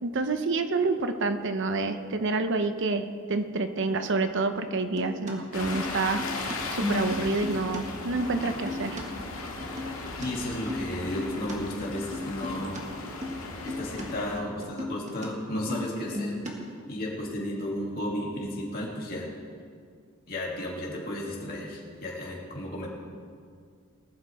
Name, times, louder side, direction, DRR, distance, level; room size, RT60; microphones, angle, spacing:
voice 1, 0.0-9.0, right 3 dB, 60° right, 8 dB, 0.8 m, -28 dB
sound 1, 5.0-7.8 8.1-9.0 9.4-10.3 10.5-11.6 12.0-12.8 13.2-13.4 13.7-14.0 14.3-15.3 15.5-16.8, left 1 dB, 35° right, 1.7 m, -35 dB
sound 2, 5.5-14.4, left 3 dB, 80° left, 1.9 m, -37 dB
voice 2, 10.2-12.8 13.6-16.4 16.9-19.3 20.3-22.9, left 1 dB, 45° left, -4 dB, 2.6 m, -33 dB
19.5 x 11.5 x 3.5 m, 2.2 s
head